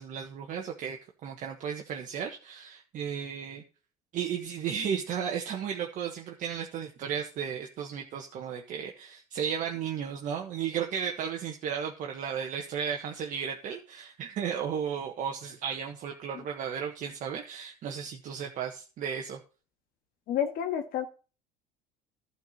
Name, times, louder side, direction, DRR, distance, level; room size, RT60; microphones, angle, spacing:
voice 1, 0.0-3.6 4.1-19.4, right 7 dB, 50° right, 2 dB, 1.5 m, -34 dB
voice 2, 20.3-21.1, left 9 dB, 60° left, 5 dB, 1.6 m, -29 dB
11.5 x 4.7 x 7.3 m, 0.35 s
cardioid pair, 115°, 17 cm